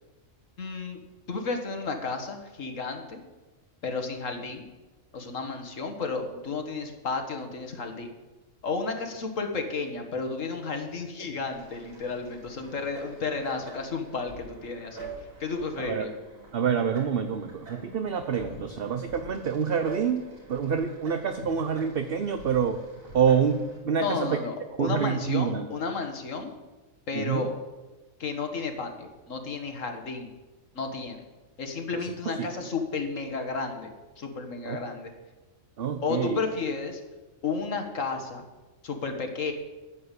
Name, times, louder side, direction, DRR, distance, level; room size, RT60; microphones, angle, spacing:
voice 1, 0.6-1.0 1.3-3.2 3.8-4.7 5.1-8.1 8.6-15.0 15.4-16.1 24.0-26.5 27.1-27.6 28.2-30.3 30.8-31.2 31.6-35.1 36.0-37.0 37.4-38.5 38.8-39.5, left 4 dB, 70° left, 5 dB, 1.9 m, -32 dB
sound 1, 11.5-23.8, right 3 dB, 80° right, 4.7 m, -46 dB
voice 2, 16.5-22.8 23.1-23.6 23.8-24.2 24.8-25.7 27.1-27.4 32.3-32.5 34.7-34.8 35.8-36.4, right 7 dB, 50° right, 8 dB, 0.9 m, -27 dB
10.0 x 9.4 x 8.3 m, 1.2 s
omnidirectional pair, 1.4 m